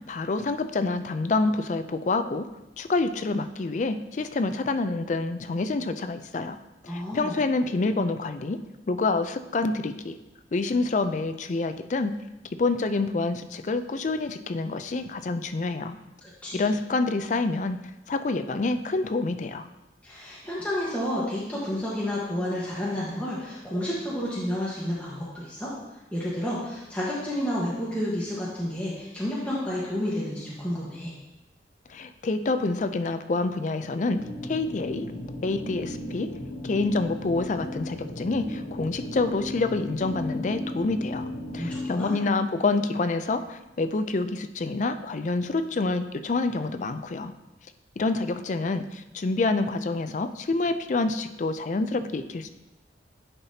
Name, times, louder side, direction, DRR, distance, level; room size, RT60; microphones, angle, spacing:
voice 1, 0.1-2.5 2.8-6.6 6.8-8.6 8.9-10.2 10.5-12.1 12.6-16.0 16.5-17.8 18.1-19.7 31.9-34.2 34.5-35.1 35.4-36.3 36.6-41.3 41.5-47.3 48.0-52.5, left 3 dB, 45° left, 9 dB, 0.4 m, -27 dB
voice 2, 6.9-7.4 16.2-16.6 20.0-25.7 26.1-31.1 41.6-42.2, left 1 dB, 10° left, -8 dB, 1.3 m, -30 dB
sound 1, 34.1-41.9, left 1 dB, 70° left, 0.9 m, -36 dB
10.0 x 5.7 x 2.8 m, 0.97 s
head